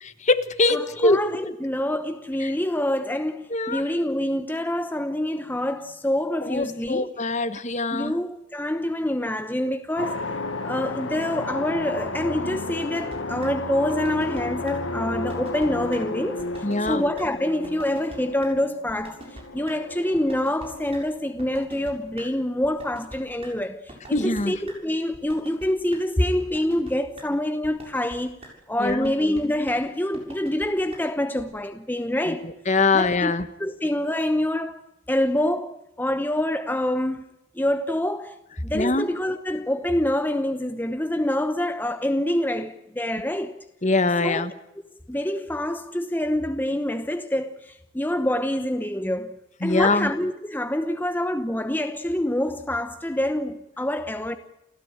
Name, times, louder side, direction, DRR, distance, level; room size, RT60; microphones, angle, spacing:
voice 1, 0.0-1.2 3.5-3.8 6.5-8.1 16.6-17.0 24.1-24.5 28.8-29.1 32.7-33.5 38.7-39.1 43.8-44.5 49.6-50.1, left 3 dB, 35° left, 1.3 m, -22 dB
voice 2, 0.7-7.1 7.9-10.4 10.6-28.4 28.7-32.5 32.9-33.3 33.6-34.8 35.1-37.3 37.5-43.6 44.2-44.4 45.1-49.4 49.6-54.4, left 1 dB, 10° left, 0.9 m, -26 dB
sound 1, 10.0-21.4, left 2 dB, 80° left, 1.7 m, -33 dB
sound 2, 12.8-13.2 13.4-13.5 13.9-14.4 14.7-14.8 15.1-15.7 15.9-16.0 16.4-16.9 17.2-17.3 17.6-18.2 18.4-18.5 18.9-19.4 19.7-19.8 20.1-20.7 20.9-21.0 21.4-22.2 22.6-23.5 23.9-24.4 24.7-24.8 25.1-25.7 25.9-26.0 26.4-26.9 27.2-27.3 27.6-28.2 28.4-28.5 28.9-29.4 29.7-29.8 30.1-30.7 30.9-31.0 31.4-31.5, right 1 dB, 30° right, 7.2 m, -42 dB
29.0 x 15.5 x 8.9 m
head